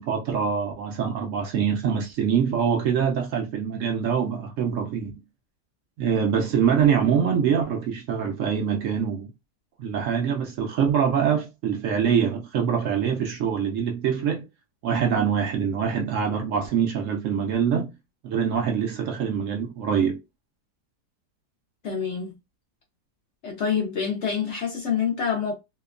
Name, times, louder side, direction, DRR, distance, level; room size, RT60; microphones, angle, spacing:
voice 1, 0.0-5.2 6.0-9.3 9.8-14.5 14.8-17.9 18.2-20.2, right 7 dB, 70° right, 0.7 m, -24 dB
voice 2, 21.8-22.4 23.4-25.5, left 7 dB, 75° left, 0.6 m, -26 dB
2.9 x 2.1 x 2.4 m
omnidirectional pair, 1.8 m